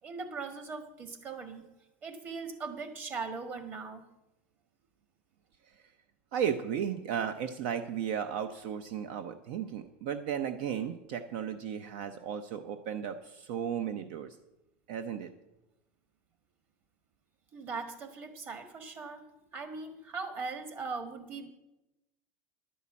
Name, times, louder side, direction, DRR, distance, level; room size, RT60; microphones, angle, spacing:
voice 1, 0.0-1.6 2.0-4.0 17.5-19.2 19.5-21.5, right 4 dB, 30° right, 7 dB, 1.5 m, -40 dB
voice 2, 6.3-14.4 14.9-15.3, right 8 dB, 65° right, 9 dB, 0.7 m, -35 dB
11.5 x 5.5 x 8.4 m, 0.94 s
supercardioid pair, 150°, 6 cm